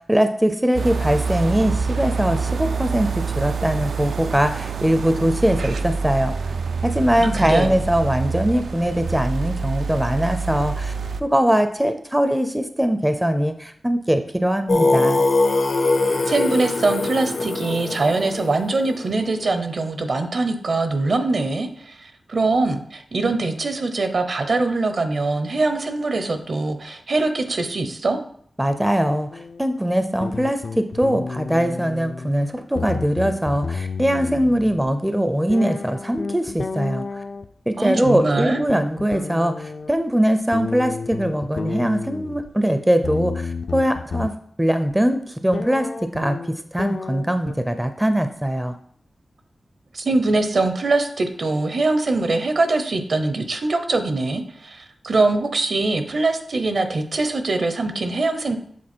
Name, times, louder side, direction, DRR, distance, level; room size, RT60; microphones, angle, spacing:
voice 1, 0.0-6.3 6.8-10.9 11.2-15.2 28.6-37.2 37.7-46.4 46.7-48.8, equal, 10° right, 8 dB, 0.4 m, -21 dB
sound 1, 0.7-11.2, right 5 dB, 90° right, 0.4 m, -26 dB
voice 2, 7.2-7.7 16.2-28.2 37.8-38.6 49.9-58.6, right 3 dB, 60° right, 8 dB, 0.7 m, -22 dB
Singing, 14.7-19.4, left 3 dB, 80° left, 0.8 m, -22 dB
sound 2, 29.3-29.6 30.2-32.3 32.6-34.9 35.5-37.5 38.1-39.9 40.5-42.5 43.0-44.3 44.9-45.0 45.5-47.5, left 4 dB, 65° left, 0.4 m, -31 dB
7.5 x 3.8 x 4.4 m, 0.63 s
wide cardioid pair, 105°, 0 cm